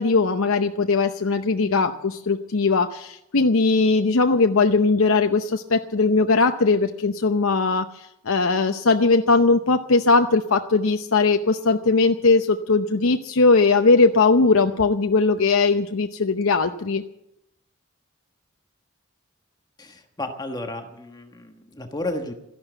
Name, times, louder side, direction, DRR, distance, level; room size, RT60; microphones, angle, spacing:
voice 1, 0.0-17.0, left 3 dB, 75° left, 6 dB, 0.7 m, -19 dB
voice 2, 19.8-22.3, left 1 dB, 20° left, 5 dB, 1.4 m, -32 dB
13.5 x 11.5 x 8.0 m, 0.81 s
head